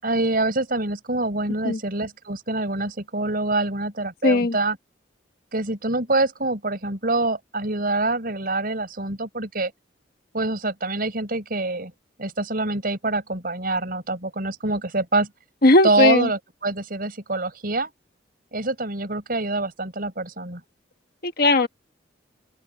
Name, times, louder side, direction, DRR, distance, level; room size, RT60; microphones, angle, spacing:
voice 1, 0.0-4.8 5.5-9.7 10.3-11.9 12.2-15.3 15.8-17.9 18.5-20.6, right 2 dB, 50° right, 5.7 m, -25 dB
voice 2, 4.2-4.6 15.6-16.3 21.2-21.7, left 2 dB, 55° left, 1.4 m, -17 dB
open air
head